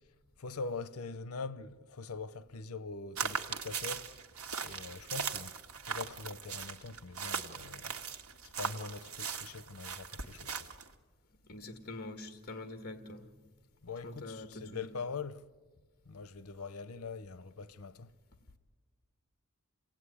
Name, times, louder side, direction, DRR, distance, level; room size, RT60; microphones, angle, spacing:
voice 1, 0.4-4.1 4.6-5.6 5.8-8.0 8.4-10.7 13.8-15.4 16.1-18.1, left 4 dB, 90° left, 0.8 m, -43 dB
sound 1, 3.2-10.9, right 6 dB, 80° right, 1.7 m, -39 dB
voice 2, 11.5-13.3 14.0-14.9, left 2 dB, 45° left, 1.7 m, -45 dB
28.5 x 18.0 x 9.9 m
head